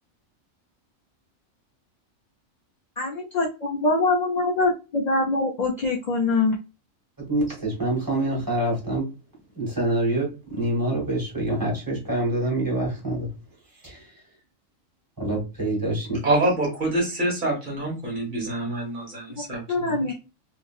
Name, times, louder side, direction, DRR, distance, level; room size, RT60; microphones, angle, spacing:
voice 1, 3.0-6.6 19.4-20.1, left 3 dB, 70° left, -1 dB, 0.4 m, -24 dB
voice 2, 7.2-9.1 9.5-13.3 13.8-14.1 15.2-16.2, right 1 dB, 15° right, -3 dB, 1.4 m, -26 dB
voice 3, 16.2-20.1, right 1 dB, 40° right, -1 dB, 1.3 m, -26 dB
2.8 x 2.6 x 2.3 m, 0.29 s
omnidirectional pair, 1.4 m